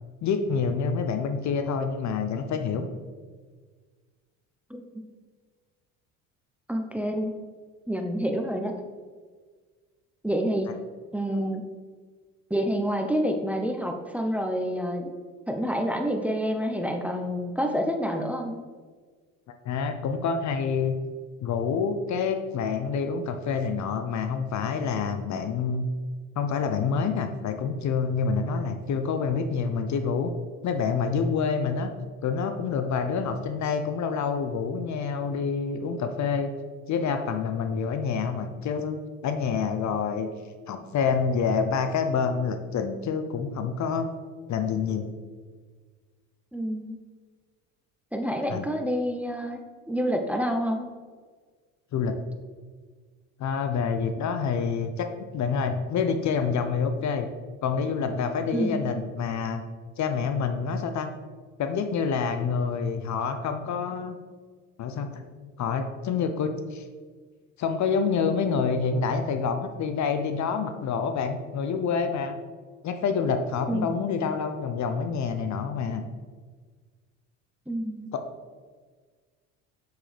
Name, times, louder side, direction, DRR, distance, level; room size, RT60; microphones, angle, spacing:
voice 1, 0.2-2.9 19.6-21.0 21.4-25.9 26.4-30.3 30.6-31.9 32.2-36.5 36.9-40.3 40.7-44.1 44.5-45.1 48.5-48.6 51.9-52.1 53.4-57.3 57.6-59.6 60.0-61.1 61.6-64.2 64.8-65.2 65.6-66.8 67.6-72.4 72.8-76.0 78.1-78.2, left 5 dB, 45° left, 8 dB, 0.8 m, -27 dB
voice 2, 6.7-7.3 7.9-8.7 10.2-10.7 11.1-11.6 12.5-15.1 15.5-18.6 46.5-47.0 48.1-49.6 49.9-50.8 58.5-59.0 73.7-73.9 77.7-78.1, equal, 5° right, 4 dB, 0.8 m, -28 dB
7.3 x 6.5 x 3.4 m, 1.5 s
hypercardioid pair, 65°, 39 cm